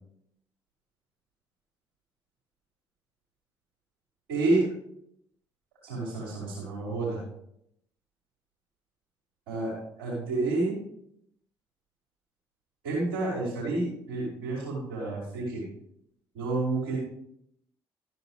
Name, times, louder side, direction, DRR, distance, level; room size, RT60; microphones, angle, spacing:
voice 1, 4.3-4.7 5.8-7.2 9.5-10.7 12.8-15.6 16.3-17.0, right 2 dB, 65° right, -10 dB, 5.6 m, -29 dB
13.5 x 10.5 x 3.6 m, 0.75 s
figure-of-eight pair, 45°, 12 cm